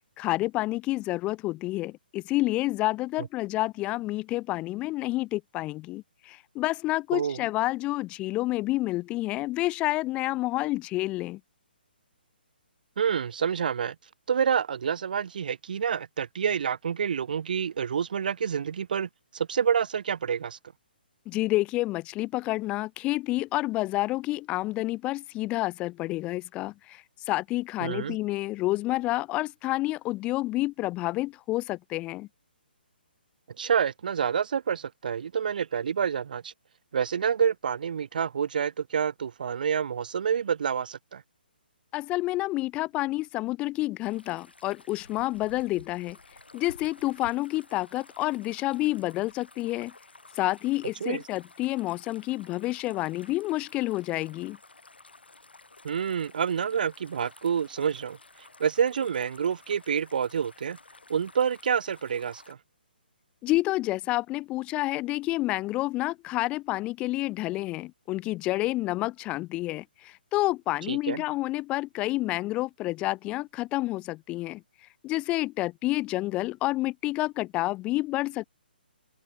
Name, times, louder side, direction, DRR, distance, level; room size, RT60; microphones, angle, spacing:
voice 1, 0.2-11.4 21.3-32.3 41.9-46.2 46.5-49.9 50.3-54.6 63.4-74.6 75.0-78.4, left 18 dB, 20° left, 0.9 m, -29 dB
voice 2, 13.0-14.0 14.3-20.6 27.8-28.2 33.6-36.5 36.9-41.2 51.0-51.2 55.8-58.2 58.6-60.8 61.1-62.6 70.9-71.2, right 7 dB, 55° right, 0.5 m, -28 dB
sound 1, 44.0-62.5, left 3 dB, 80° left, 5.2 m, -53 dB
open air
figure-of-eight pair, 135°, 6 cm